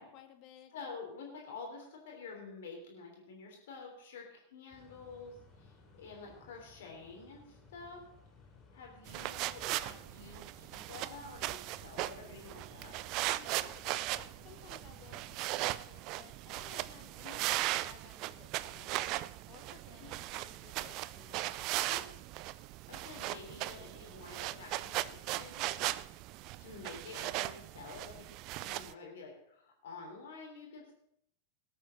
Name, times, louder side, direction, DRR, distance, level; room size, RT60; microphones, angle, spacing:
voice 1, 0.0-0.7 13.2-19.2 19.5-21.7, left 10 dB, 40° left, 8 dB, 1.1 m, -58 dB
voice 2, 0.7-5.7 6.0-8.0 8.7-13.0 17.2-17.4 20.0-20.1 21.8-22.0 22.9-26.0 26.3-30.9, left 4 dB, 55° left, 0 dB, 3.4 m, -49 dB
sound 1, 4.7-15.7, left 3 dB, 20° left, 5.2 m, -60 dB
sound 2, 9.1-28.9, right 16 dB, 40° right, 0.4 m, -38 dB
18.5 x 8.6 x 4.3 m, 0.73 s
figure-of-eight pair, 90°, 0 cm